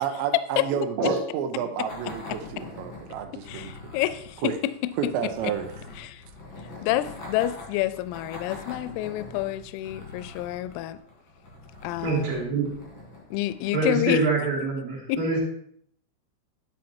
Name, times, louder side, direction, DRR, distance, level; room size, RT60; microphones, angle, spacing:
voice 1, 0.0-3.9 4.4-4.6 5.0-5.7, right 8 dB, 80° right, 6 dB, 2.7 m, -30 dB
sound 1, 1.9-14.0, left 2 dB, 45° left, 1.6 m, -43 dB
voice 2, 3.5-4.4 4.8-5.1 6.0-6.2 6.8-11.0 11.8-12.4 13.3-14.2 15.1-15.2, left 15 dB, 85° left, 15 dB, 3.1 m, -28 dB
voice 3, 12.0-12.7 13.7-15.4, right 3 dB, 55° right, -7 dB, 2.9 m, -25 dB
11.5 x 5.8 x 4.4 m, 0.66 s
omnidirectional pair, 5.8 m